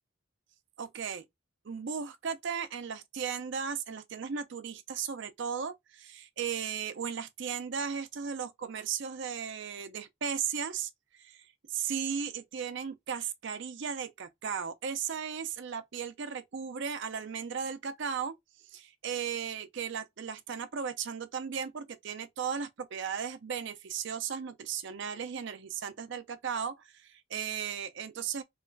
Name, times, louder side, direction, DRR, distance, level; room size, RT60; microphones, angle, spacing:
voice 1, 0.8-1.2 1.6-10.9 11.2-11.4 11.7-18.3 18.7-28.4, right 7 dB, 55° right, 0.4 m, -36 dB
3.0 x 2.4 x 3.1 m
head